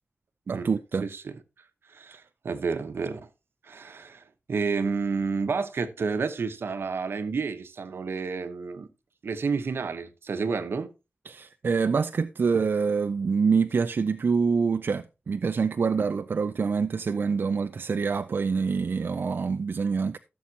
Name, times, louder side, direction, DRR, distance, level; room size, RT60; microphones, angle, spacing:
voice 1, 0.5-1.1 11.3-20.2, right 5 dB, 65° right, 0.4 m, -26 dB
voice 2, 1.0-1.3 1.9-3.3 3.6-4.2 4.5-8.9 9.2-10.9, right 5 dB, 80° right, 0.9 m, -30 dB
15.5 x 7.1 x 2.8 m
wide cardioid pair, 120°, 4 cm